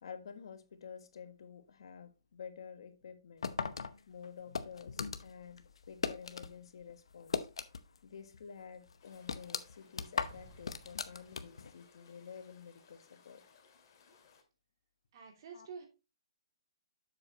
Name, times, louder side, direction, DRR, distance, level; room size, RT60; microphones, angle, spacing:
voice 1, 0.0-3.5 4.1-7.5 8.0-13.4 15.5-15.7, left 7 dB, 65° left, 1.3 m, -50 dB
sound 1, 3.4-6.5 6.8-8.0 8.3-8.4 8.9-11.7, left 5 dB, 80° left, 0.8 m, -38 dB
sound 2, 9.0-14.4, left 6 dB, 45° left, 2.1 m, -64 dB
Explosion, 10.2-11.8, right 3 dB, 25° right, 3.9 m, -58 dB
voice 2, 15.1-15.9, right 6 dB, 50° right, 2.7 m, -48 dB
7.6 x 6.5 x 3.0 m
hypercardioid pair, 150°, 3 cm